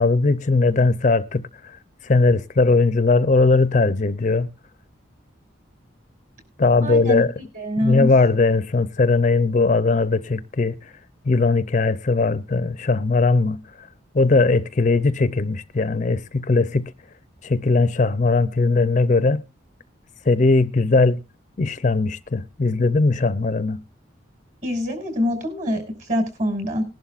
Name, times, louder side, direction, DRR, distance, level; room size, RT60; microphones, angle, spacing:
voice 1, 0.0-1.8 2.0-4.5 6.6-7.3 7.8-10.9 11.2-13.9 14.1-16.9 17.4-19.4 20.2-21.2 21.6-23.8, left 3 dB, 40° left, 0.5 m, -19 dB
voice 2, 6.8-7.2 7.5-8.1 24.6-26.8, left 1 dB, 40° right, 5.7 m, -24 dB
20.5 x 11.5 x 2.4 m
head